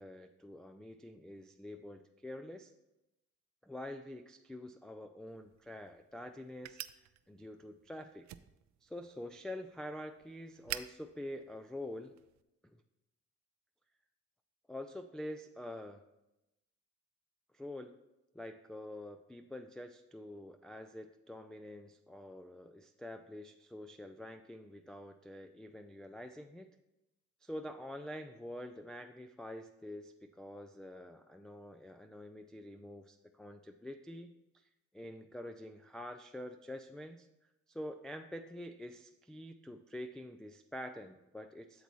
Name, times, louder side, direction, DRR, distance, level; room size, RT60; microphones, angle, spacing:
voice 1, 0.0-2.7 3.6-8.3 8.8-12.2 12.6-12.8 14.7-16.1 17.5-18.0 18.3-26.7 27.4-34.7 34.9-37.3 37.7-41.8, left 1 dB, ahead, 5 dB, 0.3 m, -46 dB
sound 1, 5.3-12.4, right 13 dB, 70° right, 0.4 m, -50 dB
8.2 x 6.9 x 3.1 m, 0.93 s
cardioid pair, 90°, 30 cm